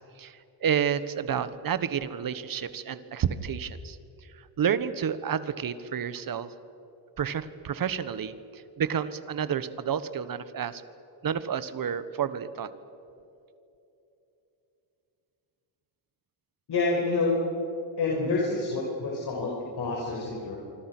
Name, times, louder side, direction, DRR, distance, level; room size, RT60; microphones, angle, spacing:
voice 1, 0.2-4.0 4.6-6.5 7.2-10.8 11.2-12.7, right 8 dB, 45° right, 14 dB, 1.4 m, -30 dB
voice 2, 16.7-17.3 18.0-20.6, left 3 dB, 55° left, -2 dB, 5.7 m, -28 dB
27.0 x 25.0 x 6.2 m, 2.9 s
cardioid pair, 125°, 47 cm